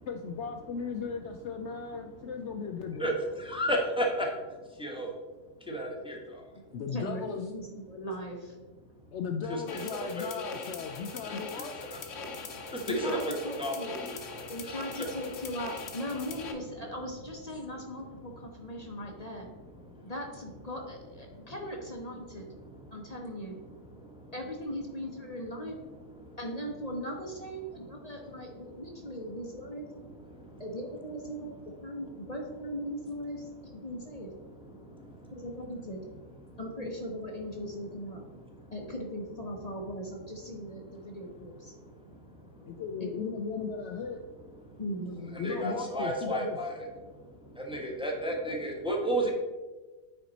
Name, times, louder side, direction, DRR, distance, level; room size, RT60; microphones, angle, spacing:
voice 1, 0.1-3.1 6.7-7.5 9.1-11.8 42.6-44.2 45.3-46.6, left 5 dB, 80° left, 4 dB, 0.6 m, -36 dB
voice 2, 3.0-5.1 5.6-6.5 9.5-9.8 10.2-10.4 11.2-14.8 18.8-19.0 19.8-20.1 21.3-21.5 22.4-23.0 23.8-24.3 26.2-26.4 28.0-28.8 29.4-29.5 30.3-30.6 34.2-35.3 36.5-36.6 38.6-38.7 41.0-41.1 41.7-42.8 44.6-44.8 45.3-49.3, right 1 dB, 5° right, 0 dB, 0.9 m, -35 dB
voice 3, 6.9-8.6 12.9-14.0 14.5-19.5 20.0-22.5 22.9-23.6 24.3-25.7 26.4-29.8 30.6-31.5 31.8-34.3 35.3-36.0 36.6-38.2 38.7-41.7 43.0-43.2 44.8-45.5, equal, 35° left, 0 dB, 0.7 m, -39 dB
sound 1, 9.7-16.5, left 4 dB, 55° left, 1.1 m, -41 dB
8.8 x 4.5 x 4.0 m, 1.3 s
omnidirectional pair, 1.7 m